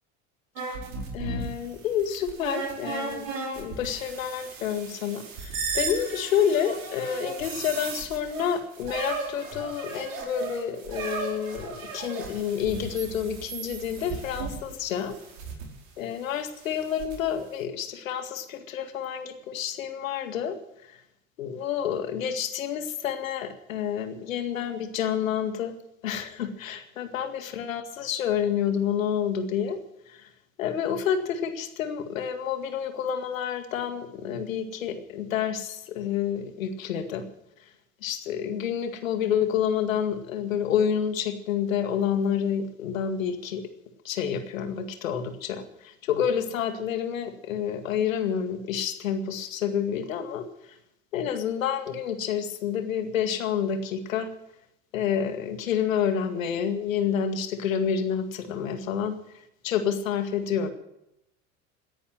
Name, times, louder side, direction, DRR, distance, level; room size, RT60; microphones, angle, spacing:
sound 1, 0.6-15.7 16.6-17.2, right 4 dB, 65° right, 4.7 m, -36 dB
voice 1, 1.1-3.3 3.6-15.1 16.0-20.9 21.4-25.7 26.0-29.8 30.1-30.3 30.6-37.3 38.0-43.6 44.0-50.5 51.1-54.3 54.9-59.2 59.6-60.7, left 8 dB, 75° left, 9 dB, 2.1 m, -29 dB
17.5 x 10.5 x 7.7 m, 0.80 s
figure-of-eight pair, 70°, 41 cm